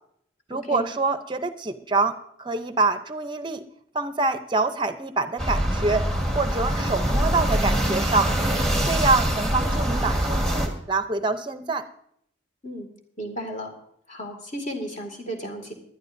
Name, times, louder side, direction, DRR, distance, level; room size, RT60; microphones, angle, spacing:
voice 1, 0.5-3.6 3.9-6.1 6.3-8.3 8.8-11.8, right 3 dB, 25° right, 9 dB, 0.6 m, -25 dB
sound 1, 5.4-10.7, right 1 dB, 5° left, 1.5 m, -24 dB
voice 2, 13.2-13.7 14.1-15.7, right 1 dB, 40° left, 3 dB, 2.1 m, -33 dB
20.0 x 11.5 x 2.6 m, 0.70 s
head